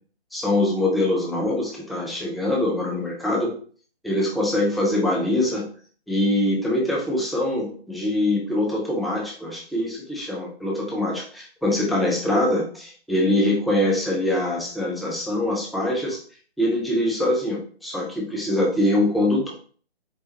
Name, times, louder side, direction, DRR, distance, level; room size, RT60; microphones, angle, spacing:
voice 1, 0.3-3.5 4.0-5.6 6.1-16.2 16.6-19.5, left 1 dB, ahead, -3 dB, 0.3 m, -23 dB
4.3 x 3.2 x 2.8 m, 0.42 s
figure-of-eight pair, 155°, 32 cm